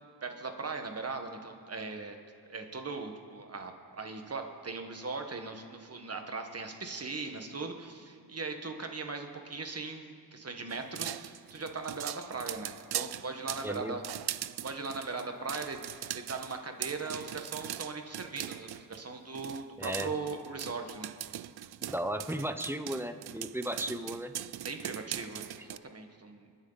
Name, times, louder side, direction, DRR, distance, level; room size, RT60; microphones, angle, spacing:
voice 1, 0.2-2.2 2.4-14.2 14.6-15.8 16.1-21.1 24.6-26.6, right 4 dB, 35° right, 5 dB, 1.4 m, -39 dB
sound 1, 10.7-19.0 19.3-25.8, right 12 dB, 70° right, 0.5 m, -40 dB
voice 2, 13.6-14.0 19.8-20.1 21.8-24.3, right 1 dB, 5° right, 9 dB, 0.6 m, -35 dB
28.5 x 9.9 x 4.0 m, 2.1 s
wide cardioid pair, 115°, 40 cm